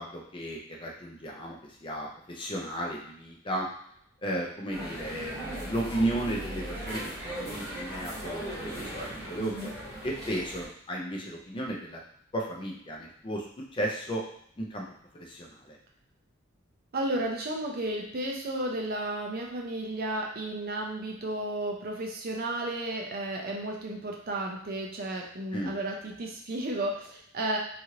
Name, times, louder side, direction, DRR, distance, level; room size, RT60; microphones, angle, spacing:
voice 1, 0.0-3.7 4.2-9.7 10.0-12.0 12.3-13.5 13.7-14.2 14.6-14.9 15.1-15.8 25.5-25.7, right 1 dB, 25° left, -1 dB, 0.5 m, -34 dB
sound 1, 4.7-10.7, right 1 dB, 5° left, 1.2 m, -38 dB
voice 2, 9.4-9.7 16.9-27.6, right 1 dB, 50° right, 0 dB, 0.5 m, -33 dB
3.0 x 2.5 x 2.8 m, 0.68 s
head